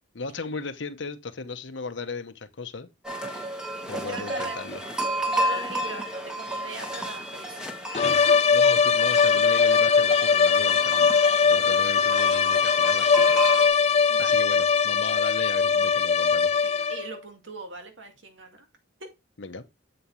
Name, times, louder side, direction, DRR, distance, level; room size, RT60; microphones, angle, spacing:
voice 1, 0.1-2.9 3.9-4.8 8.5-11.2 11.4-13.1 14.2-16.5 19.4-19.6, left 4 dB, 75° left, 0.9 m, -36 dB
sound 1, 3.0-13.7, right 1 dB, 5° right, 1.3 m, -32 dB
voice 2, 3.9-4.6 5.2-7.7 8.0-8.4 14.1-14.4 16.6-18.7 19.0-19.1, right 2 dB, 80° right, 2.0 m, -40 dB
sound 2, 7.9-17.1, left 6 dB, 35° left, 0.4 m, -21 dB
7.9 x 7.0 x 3.1 m
head